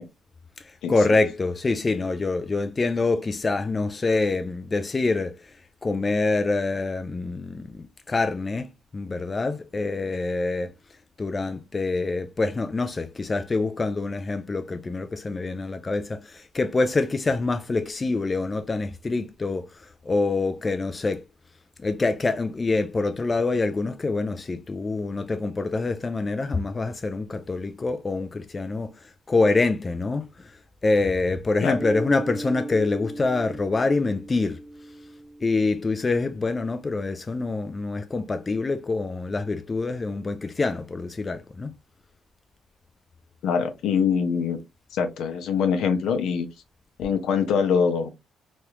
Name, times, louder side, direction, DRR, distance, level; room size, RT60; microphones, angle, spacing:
voice 1, 0.6-5.5 5.8-10.7 11.2-21.2 21.8-30.6 30.8-34.6 35.4-41.7, left 3 dB, 30° left, 0.4 m, -26 dB
Mallet percussion, 31.7-36.1, right 1 dB, 15° right, 0.7 m, -37 dB
voice 2, 43.4-44.6 44.9-46.5 47.0-48.1, left 6 dB, 80° left, 0.7 m, -23 dB
3.0 x 2.4 x 3.1 m
cardioid pair, 90°, 0 cm